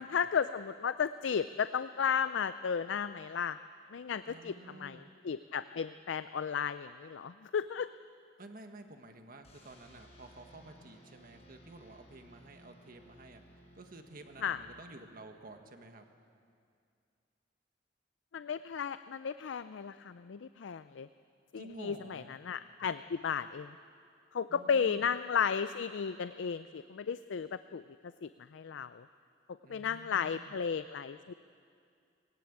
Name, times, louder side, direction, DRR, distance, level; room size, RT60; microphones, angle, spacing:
voice 1, 0.0-3.6 3.9-4.5 4.8-7.9 14.4-14.6 18.3-21.1 21.5-23.8 24.3-27.8 28.2-29.1 29.7-31.3, left 7 dB, 80° left, 13 dB, 0.4 m, -34 dB
voice 2, 4.3-5.1 8.4-13.4 13.7-16.0 21.5-22.4 24.5-25.1 29.6-30.6, right 2 dB, 50° right, 6 dB, 1.5 m, -51 dB
sound 1, 9.4-15.3, equal, 35° left, 4.7 m, -59 dB
19.5 x 17.5 x 8.7 m, 2.4 s
head